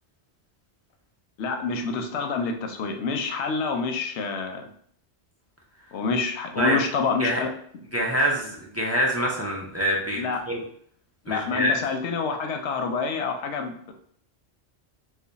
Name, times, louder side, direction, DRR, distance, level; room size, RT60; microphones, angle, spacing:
voice 1, 1.4-4.7 5.9-7.5 10.2-10.4 11.3-13.9, left 4 dB, 80° left, 5 dB, 0.9 m, -27 dB
voice 2, 7.9-10.2 10.5-10.6 11.3-11.8, equal, 25° right, -3 dB, 0.3 m, -25 dB
3.2 x 2.2 x 3.9 m, 0.63 s
omnidirectional pair, 1.1 m